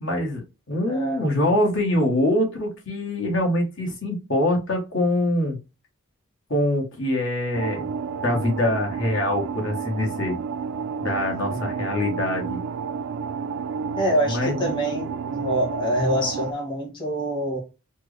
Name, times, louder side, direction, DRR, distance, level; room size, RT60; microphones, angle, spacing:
voice 1, 0.0-5.6 6.5-7.9 8.2-10.4 11.0-12.6 14.2-14.7, left 1 dB, 60° left, 1.2 m, -24 dB
voice 2, 0.9-1.3 11.5-11.7 14.0-17.6, equal, 20° left, 1.1 m, -26 dB
sound 1, 7.5-16.5, right 6 dB, 65° right, 0.3 m, -31 dB
4.4 x 2.0 x 3.2 m
head